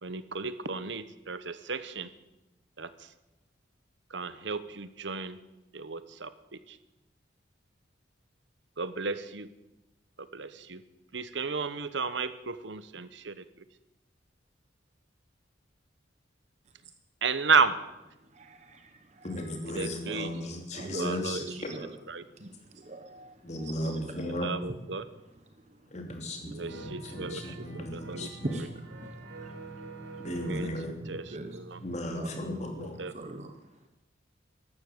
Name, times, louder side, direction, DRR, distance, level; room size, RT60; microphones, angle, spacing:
voice 1, 0.0-2.1 2.8-3.1 4.1-5.4 5.7-6.8 8.8-9.5 10.2-10.8 11.1-13.4 17.2-17.8 19.7-20.3 21.0-21.4 21.8-22.2 24.2-25.0 26.5-28.4 30.2-30.7 31.1-31.8 32.8-33.1, right 4 dB, 70° right, 13 dB, 1.0 m, -33 dB
voice 2, 18.2-19.8 20.7-21.9 22.2-24.2 25.5-26.6 27.1-30.3 31.0-31.6 32.0-32.4 32.9-33.9, right 1 dB, 35° right, 6 dB, 1.1 m, -43 dB
voice 3, 19.2-21.7 23.4-24.5 25.9-28.6 30.2-30.9 31.8-33.0, left 1 dB, 35° left, 3 dB, 2.9 m, -36 dB
sound 1, 26.6-32.2 32.5-32.6, right 2 dB, 90° right, 5.2 m, -46 dB
14.5 x 12.0 x 8.1 m, 0.97 s
head